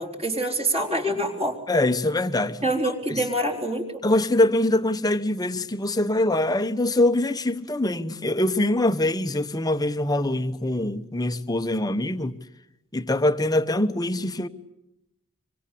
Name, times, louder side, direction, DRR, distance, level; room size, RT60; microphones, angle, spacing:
voice 1, 0.0-1.6 2.6-3.8, right 1 dB, 30° right, 4.3 m, -25 dB
voice 2, 1.7-2.6 3.1-3.2 4.0-12.4 12.9-14.5, left 1 dB, 15° left, 1.0 m, -23 dB
26.0 x 25.5 x 8.5 m
head